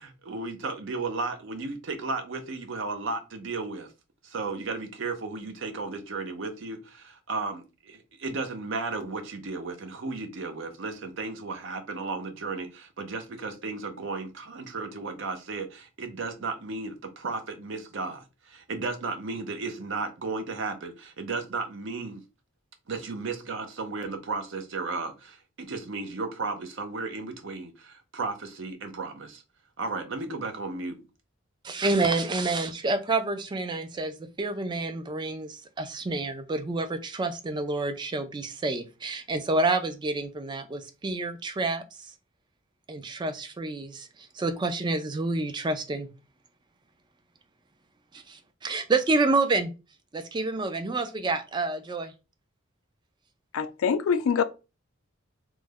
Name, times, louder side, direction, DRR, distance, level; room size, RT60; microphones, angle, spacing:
voice 1, 0.0-3.9 4.2-22.2 22.9-29.4 29.8-31.0, right 3 dB, 65° right, 0.6 m, -34 dB
voice 2, 31.6-42.1 42.9-46.1 48.1-49.7 50.1-52.1, right 3 dB, 20° right, 0.4 m, -28 dB
voice 3, 53.5-54.4, left 6 dB, 80° left, 0.4 m, -24 dB
3.1 x 2.1 x 3.5 m
head